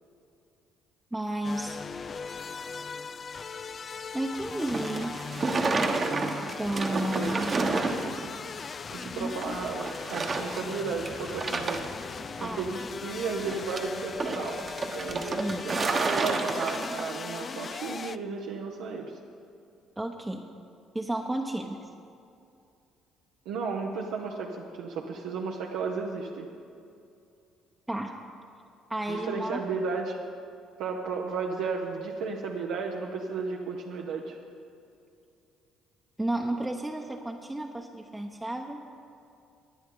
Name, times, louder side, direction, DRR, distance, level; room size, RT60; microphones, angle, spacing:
voice 1, 1.1-1.8 4.1-5.2 6.4-7.8 9.2-9.5 12.4-12.6 15.2-15.6 20.0-20.5 20.9-21.9 27.9-28.2 28.9-29.6 36.2-38.8, right 1 dB, 10° right, 0 dB, 1.0 m, -32 dB
sound 1, 1.4-18.2, left 5 dB, 40° left, 0.4 m, -39 dB
sound 2, 4.5-8.3 8.6-8.7 9.4-9.5 9.8-10.8 11.1-12.0 13.4-17.2, right 3 dB, 40° right, 1.2 m, -30 dB
voice 2, 6.9-7.3 8.9-11.8 12.4-14.6 14.9-19.2 23.4-26.5 29.1-30.2 30.8-34.4, right 4 dB, 80° right, -1 dB, 1.0 m, -33 dB
18.5 x 10.0 x 3.9 m, 2.6 s
hypercardioid pair, 60°, 0 cm